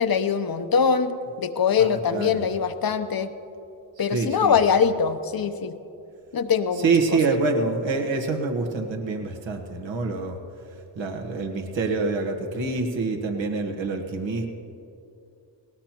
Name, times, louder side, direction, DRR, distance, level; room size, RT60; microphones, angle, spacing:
voice 1, 0.0-3.3 4.0-5.7 6.3-7.2, left 6 dB, 50° left, 9 dB, 0.9 m, -23 dB
voice 2, 1.8-2.5 4.1-4.5 6.8-10.4 11.0-14.5, right 3 dB, 70° right, 3 dB, 1.5 m, -26 dB
18.5 x 17.5 x 3.0 m, 2.7 s
supercardioid pair, 50°, 46 cm